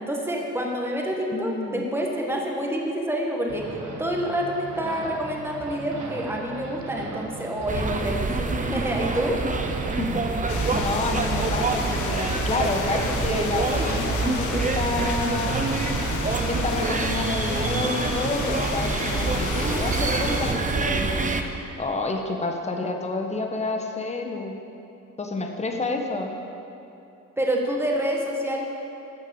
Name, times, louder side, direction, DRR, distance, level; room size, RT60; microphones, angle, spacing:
voice 1, 0.0-3.7 4.0-9.4 27.4-28.6, equal, 10° right, -1 dB, 1.8 m, -27 dB
voice 2, 1.3-1.8 10.0-15.6 16.5-21.3 21.8-24.6 25.2-26.3, left 3 dB, 20° left, 3 dB, 1.2 m, -29 dB
sound 1, 3.5-16.1, right 3 dB, 70° right, 1.5 m, -39 dB
sound 2, 7.7-21.4, right 3 dB, 25° right, 0.9 m, -26 dB
sound 3, 10.5-20.5, left 4 dB, 75° left, 1.3 m, -32 dB
12.0 x 6.4 x 7.2 m, 2.8 s
cardioid pair, 90°, 30 cm